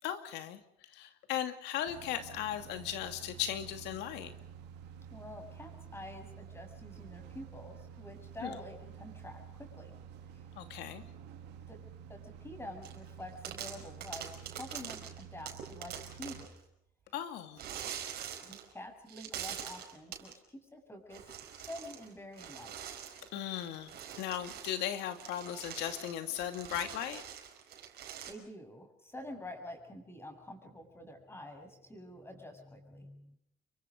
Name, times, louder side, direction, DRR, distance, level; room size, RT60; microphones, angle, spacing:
voice 1, 0.0-0.6 0.9-4.3 8.4-8.6 10.6-11.0 17.1-17.7 23.3-27.2, left 11 dB, 85° left, 8 dB, 2.5 m, -37 dB
sound 1, 1.8-16.5, right 8 dB, 90° right, 2.9 m, -50 dB
voice 2, 5.1-9.9 10.3-10.4 11.7-16.5 18.4-22.8 28.3-33.4, left 1 dB, 15° left, 5 dB, 7.4 m, -48 dB
sound 2, 12.8-13.1 13.4-16.6 17.6-18.7 19.1-20.3 21.1-22.1 22.3-28.3, right 9 dB, 70° right, 4.8 m, -44 dB
28.5 x 23.5 x 5.2 m, 0.72 s
cardioid pair, 110°, 17 cm